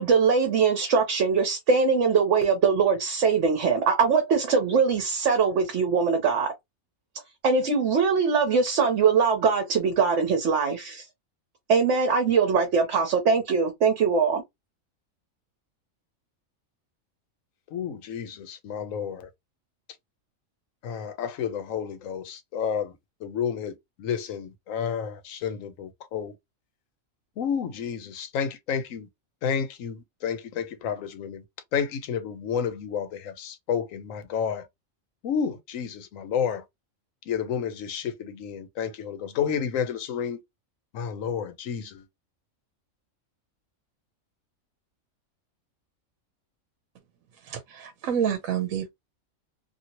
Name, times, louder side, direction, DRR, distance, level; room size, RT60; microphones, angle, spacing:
voice 1, 0.0-6.5 7.4-11.1 11.7-14.4, right 5 dB, 65° right, 1.1 m, -22 dB
voice 2, 17.7-19.3 20.8-22.9 23.2-26.3 27.4-29.1 29.4-31.4 31.7-34.6 35.2-36.6 37.3-40.4 40.9-42.0, left 7 dB, 75° left, 1.1 m, -30 dB
voice 3, 47.5-48.9, right 8 dB, 85° right, 1.1 m, -28 dB
2.8 x 2.8 x 2.8 m
omnidirectional pair, 1.4 m